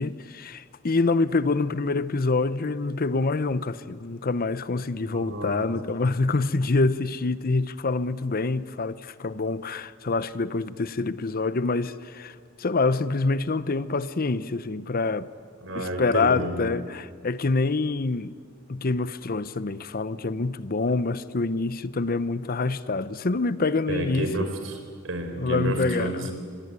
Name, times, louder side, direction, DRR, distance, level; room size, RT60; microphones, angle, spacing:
voice 1, 0.0-15.3 15.7-18.3 18.7-24.5 25.4-26.3, left 3 dB, 45° left, 0.7 m, -26 dB
voice 2, 5.0-5.7 15.6-16.5 23.9-24.8 25.0-26.3, right 1 dB, 75° right, 4.2 m, -30 dB
25.0 x 22.0 x 9.6 m
head